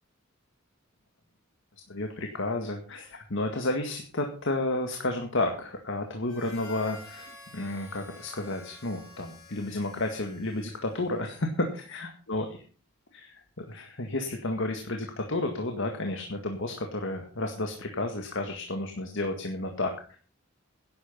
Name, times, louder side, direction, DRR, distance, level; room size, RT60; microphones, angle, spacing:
voice 1, 1.9-12.6 13.1-20.2, left 2 dB, 65° left, 4 dB, 1.9 m, -32 dB
Harmonica, 6.3-11.3, left 3 dB, 80° left, 6.5 m, -50 dB
11.5 x 10.5 x 5.6 m, 0.39 s
head